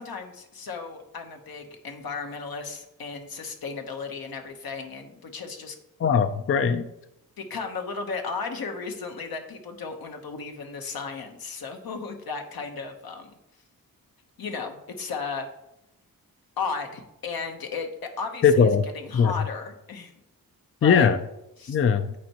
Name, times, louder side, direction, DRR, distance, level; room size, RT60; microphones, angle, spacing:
voice 1, 0.0-5.8 7.4-13.3 14.4-15.4 16.6-17.9 18.2-18.7 18.9-20.1 20.8-21.1 21.6-21.8, left 5 dB, 75° left, 4 dB, 1.0 m, -34 dB
voice 2, 6.0-6.9 18.4-18.9 19.1-19.3 20.8-21.2 21.7-22.1, left 6 dB, 35° left, 10 dB, 0.4 m, -20 dB
8.4 x 4.5 x 2.9 m, 0.86 s
cardioid pair, 50°, 37 cm